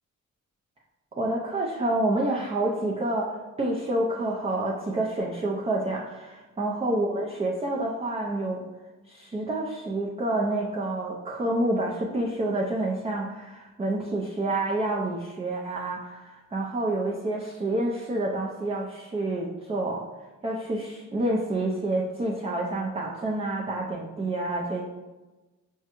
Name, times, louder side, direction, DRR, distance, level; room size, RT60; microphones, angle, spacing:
voice 1, 1.2-8.6 9.1-20.0 20.4-24.8, right 2 dB, 20° right, -2 dB, 0.4 m, -28 dB
5.9 x 2.2 x 2.9 m, 1.2 s
cardioid pair, 110°, 33 cm